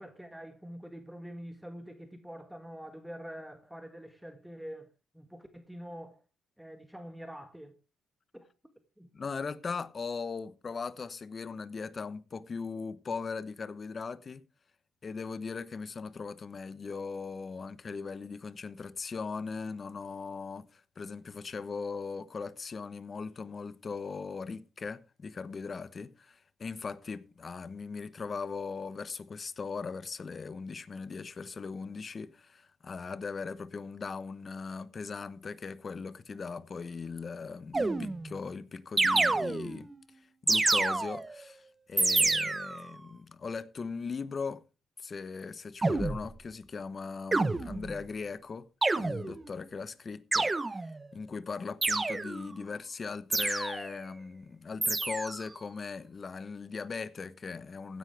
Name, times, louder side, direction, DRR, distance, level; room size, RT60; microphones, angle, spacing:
voice 1, 0.0-4.9 5.1-6.2 6.6-7.7 8.3-8.4 9.0-9.1, equal, 5° right, 1.7 m, -45 dB
voice 2, 9.1-14.4 15.0-39.9 40.4-44.6 45.0-48.7 49.0-58.0, left 5 dB, 40° left, 0.9 m, -39 dB
sound 1, 37.7-38.4 39.0-39.9 40.5-41.4 42.0-42.9 45.8-46.3 47.3-48.0 48.8-49.5 50.3-51.1 51.8-52.5 53.3-54.0 54.8-55.5, right 3 dB, 20° right, 0.8 m, -28 dB
15.5 x 10.5 x 3.4 m
cardioid pair, 90°, 0 cm